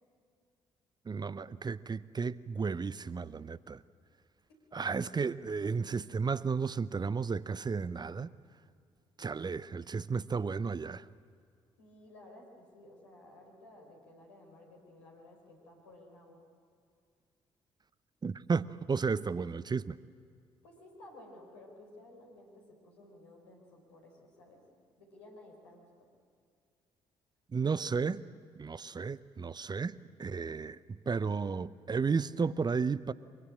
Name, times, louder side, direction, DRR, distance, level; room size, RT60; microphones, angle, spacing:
voice 1, 1.1-3.8 4.7-8.3 9.2-11.1 18.2-20.0 27.5-28.2 28.6-33.1, right 5 dB, 30° right, 18 dB, 0.8 m, -33 dB
voice 2, 11.8-16.4 20.6-24.6 25.0-26.1, left 1 dB, 80° left, 0 dB, 5.1 m, -55 dB
24.5 x 24.0 x 8.9 m, 2.3 s
figure-of-eight pair, 45°, 14 cm